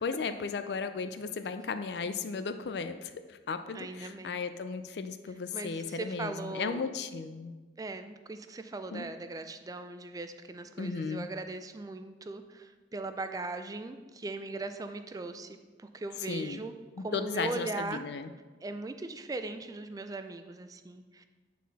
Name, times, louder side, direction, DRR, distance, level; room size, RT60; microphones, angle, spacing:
voice 1, 0.0-7.5 8.9-9.1 10.8-11.3 16.3-16.6 17.0-18.3, left 5 dB, 65° left, 10 dB, 0.4 m, -35 dB
voice 2, 3.7-4.4 5.5-6.9 7.8-18.1 18.6-21.2, right 3 dB, 20° right, 9 dB, 0.3 m, -39 dB
8.4 x 4.1 x 4.0 m, 1.3 s
head